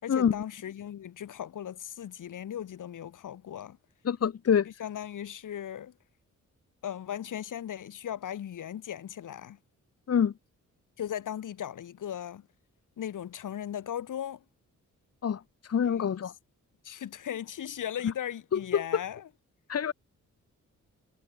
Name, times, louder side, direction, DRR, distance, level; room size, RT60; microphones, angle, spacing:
voice 1, 0.0-3.8 4.8-5.9 6.8-9.6 11.0-12.5 13.0-14.4 15.9-16.2 16.8-19.3, left 10 dB, 80° left, 5.8 m, -37 dB
voice 2, 4.0-4.7 10.1-10.3 15.2-15.4 15.7-16.3 18.0-18.1 18.5-18.8 19.7-19.9, left 8 dB, 50° left, 5.8 m, -26 dB
wide cardioid pair, 180°, 31 cm